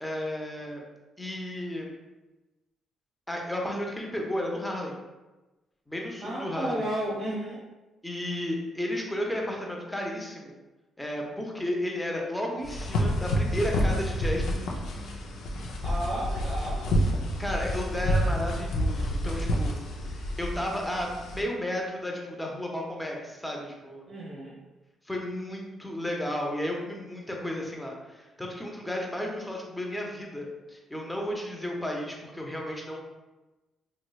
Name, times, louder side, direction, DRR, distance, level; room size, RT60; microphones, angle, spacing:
voice 1, 0.0-0.8 1.2-1.9 3.3-4.9 5.9-6.9 8.0-10.6 11.0-14.8 17.4-19.8 20.0-24.1 25.0-33.0, left 1 dB, 5° left, -1 dB, 0.6 m, -33 dB
voice 2, 6.2-7.6 15.8-17.2 24.1-24.6, right 1 dB, 40° right, -4 dB, 0.7 m, -33 dB
sound 1, 12.6-21.4, equal, 80° left, 0.4 m, -28 dB
3.0 x 2.9 x 2.3 m, 1.1 s
cardioid pair, 90°, 0 cm